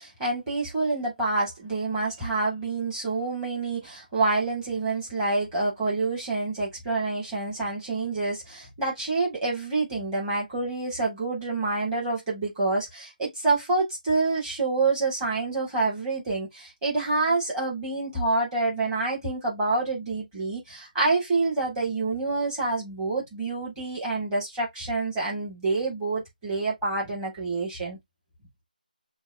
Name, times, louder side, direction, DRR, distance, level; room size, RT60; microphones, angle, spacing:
voice 1, 0.0-28.0, right 3 dB, 10° right, 2.0 m, -27 dB
6.1 x 2.4 x 2.6 m
figure-of-eight pair, 165°, 5 cm